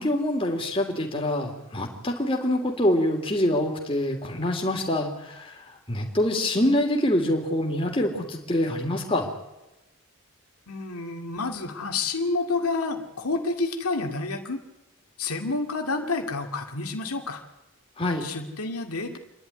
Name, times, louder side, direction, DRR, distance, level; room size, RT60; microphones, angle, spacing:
voice 1, 0.0-5.1 5.9-9.3 18.0-18.2, left 1 dB, 25° left, 1 dB, 3.1 m, -25 dB
voice 2, 10.7-14.6 15.2-17.4 18.2-19.2, left 3 dB, 90° left, 3 dB, 2.5 m, -29 dB
27.5 x 11.5 x 9.9 m, 0.96 s
head